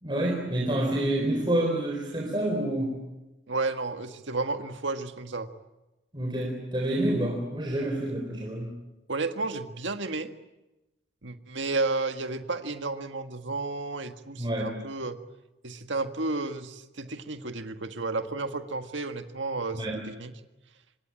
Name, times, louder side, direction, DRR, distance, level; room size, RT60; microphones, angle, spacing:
voice 1, 0.0-3.0 6.1-8.7 14.4-14.7 19.7-20.0, right 1 dB, 25° right, 0 dB, 4.2 m, -28 dB
voice 2, 3.5-5.5 9.1-10.3 11.2-15.2 15.6-20.3, right 3 dB, 80° right, 7 dB, 1.7 m, -32 dB
26.0 x 23.5 x 8.8 m, 0.99 s
head